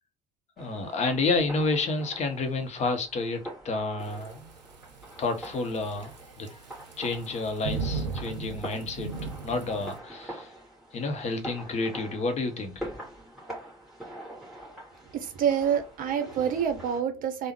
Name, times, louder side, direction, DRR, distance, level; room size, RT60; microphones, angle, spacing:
voice 1, 0.6-4.5 5.2-6.6 7.0-9.1 9.4-10.5 10.9-12.9, left 3 dB, 30° left, 0.7 m, -30 dB
sound 1, 0.6-17.0, right 1 dB, ahead, 1.8 m, -44 dB
Thunderstorm / Rain, 4.0-10.0, right 4 dB, 80° right, 0.5 m, -37 dB
voice 2, 15.1-17.5, right 8 dB, 40° right, 0.7 m, -27 dB
3.4 x 2.1 x 3.0 m
figure-of-eight pair, 65°, 21 cm